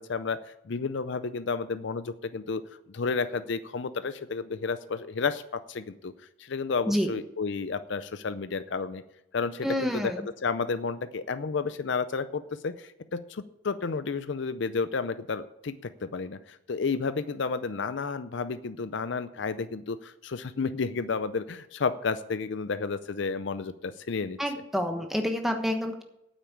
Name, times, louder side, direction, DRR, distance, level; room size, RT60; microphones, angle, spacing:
voice 1, 0.0-2.6 2.9-6.1 6.4-9.0 9.3-10.1 10.4-24.4, left 4 dB, 55° left, 13 dB, 0.5 m, -31 dB
voice 2, 9.6-10.3 24.4-26.0, equal, ahead, 4 dB, 1.1 m, -28 dB
9.2 x 8.2 x 8.6 m, 0.87 s
head